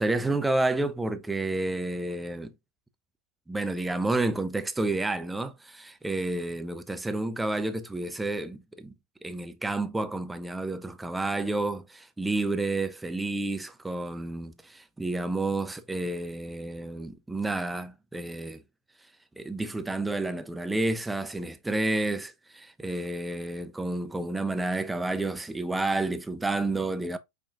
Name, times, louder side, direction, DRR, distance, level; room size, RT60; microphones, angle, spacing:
voice 1, 0.0-2.5 3.5-8.9 9.2-18.6 19.4-27.2, right 2 dB, 5° right, 0.4 m, -30 dB
5.4 x 2.4 x 2.4 m
hypercardioid pair, 115°, 0 cm